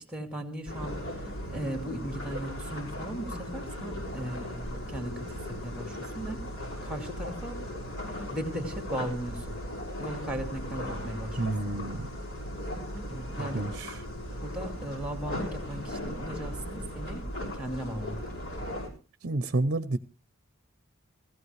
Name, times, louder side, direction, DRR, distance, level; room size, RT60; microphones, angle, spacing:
voice 1, 0.0-6.4 6.8-7.6 8.3-9.6 10.0-11.7 13.1-13.6 14.4-17.3 17.5-18.2, right 1 dB, 5° right, 4 dB, 2.3 m, -37 dB
sound 1, 0.7-18.9, equal, 65° left, 6.2 m, -37 dB
voice 2, 11.4-12.0 13.4-14.0 19.2-20.0, right 2 dB, 55° right, 12 dB, 0.7 m, -30 dB
17.5 x 15.5 x 3.2 m, 0.31 s
head